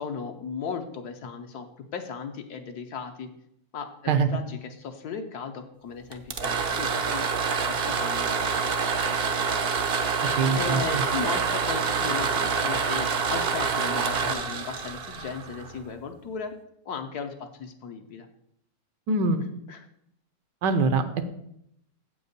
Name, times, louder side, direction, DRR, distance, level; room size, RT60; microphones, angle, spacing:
voice 1, 0.0-3.3 3.7-7.2 7.7-9.8 10.5-16.5 16.8-18.3 19.7-19.9, left 6 dB, 65° left, 6 dB, 1.2 m, -36 dB
sound 1, 6.1-15.9, right 5 dB, 55° right, 0.6 m, -27 dB
voice 2, 10.4-11.0 19.1-19.5 20.6-21.2, right 4 dB, 75° right, 10 dB, 1.4 m, -24 dB
7.6 x 5.4 x 6.6 m, 0.74 s
omnidirectional pair, 1.9 m